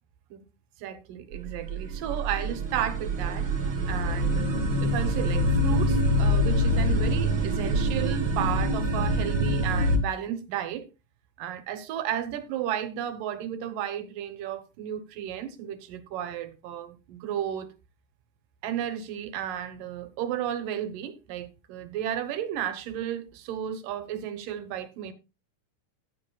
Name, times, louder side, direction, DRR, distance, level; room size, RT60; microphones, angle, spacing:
voice 1, 0.8-3.5 3.9-10.9 11.4-17.7 18.6-25.1, right 10 dB, 85° right, 2.7 m, -33 dB
sound 1, 1.3-10.0, equal, 45° right, 1.9 m, -25 dB
14.5 x 10.5 x 2.3 m
omnidirectional pair, 3.8 m